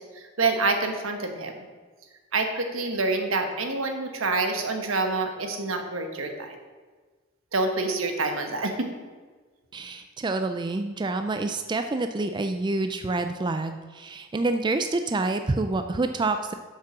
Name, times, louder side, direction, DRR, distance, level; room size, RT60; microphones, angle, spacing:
voice 1, 0.4-1.5 2.3-6.5 7.5-8.9, right 3 dB, 80° right, 5 dB, 1.2 m, -27 dB
voice 2, 9.7-16.5, right 2 dB, 20° right, 7 dB, 0.3 m, -27 dB
7.5 x 5.9 x 6.0 m, 1.4 s
head